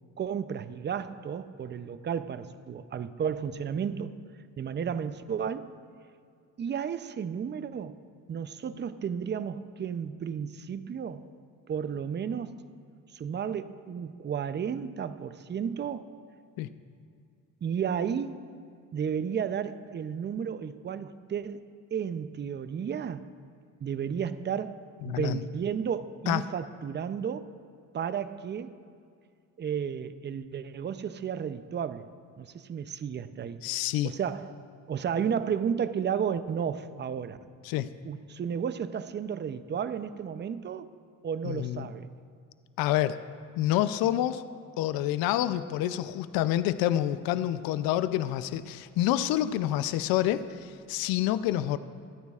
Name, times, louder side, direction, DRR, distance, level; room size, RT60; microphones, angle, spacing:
voice 1, 0.2-4.1 4.6-5.7 6.6-8.0 8.3-11.2 11.7-12.5 13.1-16.1 17.6-18.4 18.9-21.6 21.9-23.3 23.8-24.8 25.0-27.5 27.9-28.8 29.6-32.1 32.4-33.6 34.0-34.5 34.9-37.4 38.0-40.9 41.2-42.1, right 7 dB, 30° right, 0.5 m, -33 dB
voice 2, 25.0-25.4 26.3-26.4 33.6-34.1 37.6-37.9 41.4-41.9 42.8-43.2 43.6-44.4 44.8-51.8, left 13 dB, 80° left, 0.5 m, -28 dB
26.5 x 9.4 x 2.4 m
supercardioid pair, 80°, 35 cm